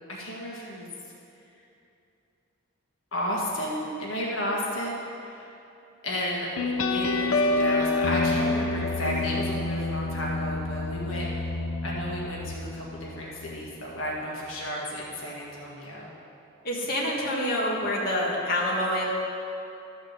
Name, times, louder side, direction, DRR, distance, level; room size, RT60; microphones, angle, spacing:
voice 1, 0.1-0.9 3.1-5.5 6.0-11.5 11.8-16.1, equal, 70° left, -4 dB, 1.7 m, -32 dB
sound 1, 6.6-13.7, left 3 dB, 85° left, 0.7 m, -28 dB
voice 2, 16.6-19.0, left 1 dB, 50° left, -5 dB, 1.8 m, -27 dB
12.5 x 5.1 x 7.8 m, 2.8 s
head